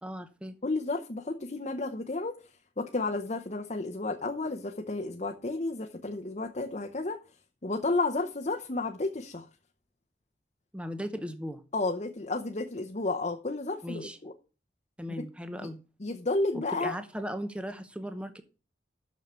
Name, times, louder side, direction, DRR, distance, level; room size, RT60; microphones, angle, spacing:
voice 1, 0.0-0.5 10.7-11.6 13.8-14.2 15.0-15.8 16.5-18.4, equal, 5° right, 0.7 m, -37 dB
voice 2, 0.6-2.4 2.8-7.2 7.6-9.5 11.7-14.3 15.6-15.7 16.0-17.0, left 2 dB, 40° left, 0.8 m, -32 dB
7.3 x 6.5 x 6.9 m
head